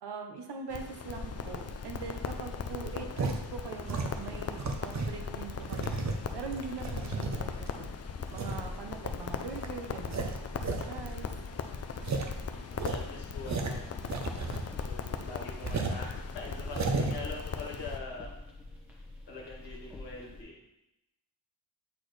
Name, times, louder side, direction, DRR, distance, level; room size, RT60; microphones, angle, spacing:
voice 1, 0.0-8.0 8.3-10.4 10.9-11.3, right 5 dB, 65° right, 4 dB, 0.9 m, -42 dB
Crackle, 0.7-18.0, left 6 dB, 35° left, 0.4 m, -39 dB
sound 1, 1.4-20.4, left 2 dB, 5° right, 1.3 m, -48 dB
sound 2, 3.2-3.4 3.9-5.2 5.6-7.7 8.3-8.6 9.1-9.2 9.6-9.7 10.0-10.9 11.1-11.2 11.5-11.6 12.0-12.3 12.7-14.8 15.1-15.2 15.6-16.0 16.6-17.2, right 3 dB, 40° right, 0.6 m, -33 dB
voice 2, 12.7-14.0 14.8-18.3 19.3-20.6, left 3 dB, 65° left, -3 dB, 1.5 m, -43 dB
8.3 x 4.1 x 3.2 m, 0.89 s
wide cardioid pair, 150°, 44 cm